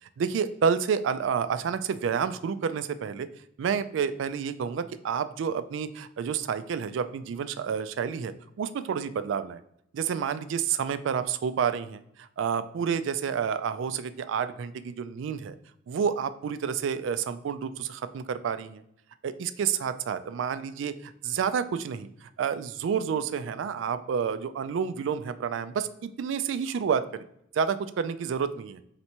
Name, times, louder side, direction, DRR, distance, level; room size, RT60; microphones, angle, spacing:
voice 1, 0.2-3.3 3.6-9.6 9.9-15.5 15.9-18.8 19.2-27.2 27.5-28.8, right 7 dB, 65° right, 12 dB, 0.3 m, -29 dB
4.2 x 3.3 x 2.9 m, 0.74 s
head